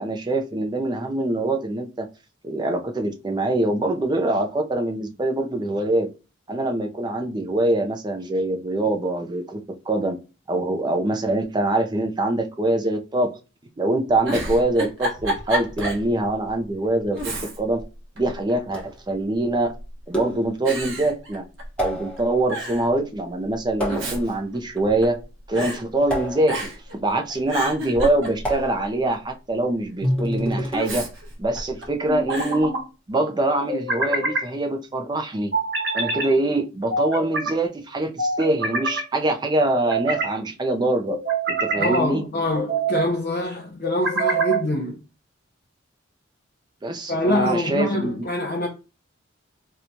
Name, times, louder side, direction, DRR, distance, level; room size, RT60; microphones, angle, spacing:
voice 1, 0.0-2.1 2.4-6.1 6.5-9.6 9.9-10.2 10.5-13.3 13.8-17.8 18.2-19.7 20.1-21.5 21.8-25.2 25.5-31.1 31.4-32.7 33.1-35.5 35.9-41.2 41.5-42.3 46.8-48.1, right 2 dB, 20° right, 0.5 m, -24 dB
Giggle, 14.2-16.1 16.5-16.6 17.1-17.8 18.2-19.0 19.7-20.1 20.7-21.9 22.2-22.3 22.5-22.9 23.7-25.2 25.6-25.8 26.5-26.9 27.3-28.7 30.7-31.9 32.3-32.6, equal, 85° right, 1.1 m, -30 dB
sound 1, 14.4-14.8 15.8-16.1 17.2-17.4 18.7-19.0 20.1-20.7 21.8-22.4 23.8-24.4 26.1-26.8 28.4-29.1 30.0-30.8, right 1 dB, 5° left, 0.9 m, -32 dB
sound 2, 30.0-30.7 32.1-32.8 33.7-34.5 35.5-36.3 36.9-37.5 38.2-39.0 39.7-40.3 41.1-42.0 42.5-43.1 43.8-44.6, right 3 dB, 60° right, 1.1 m, -25 dB
voice 2, 41.8-45.0 47.1-48.7, left 1 dB, 50° left, 0.6 m, -24 dB
4.4 x 2.3 x 2.6 m
head